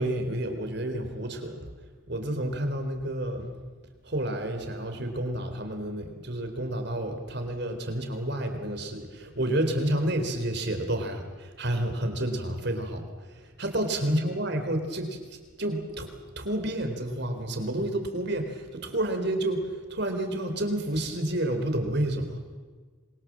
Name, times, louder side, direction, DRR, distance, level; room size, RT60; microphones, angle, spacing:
voice 1, 0.0-1.7 2.1-3.5 4.0-13.0 13.3-16.1 16.4-22.4, right 1 dB, 55° right, 6 dB, 3.8 m, -30 dB
27.0 x 23.0 x 7.5 m, 1.5 s
head